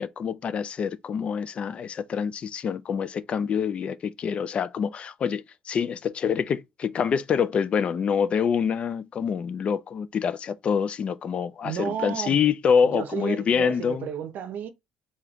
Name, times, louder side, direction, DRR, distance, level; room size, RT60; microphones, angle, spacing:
voice 1, 0.0-14.1, left 7 dB, 35° left, 0.3 m, -26 dB
voice 2, 11.6-12.4 12.8-14.7, right 8 dB, 60° right, 0.6 m, -32 dB
3.5 x 2.8 x 3.5 m
cardioid pair, 145°, 3 cm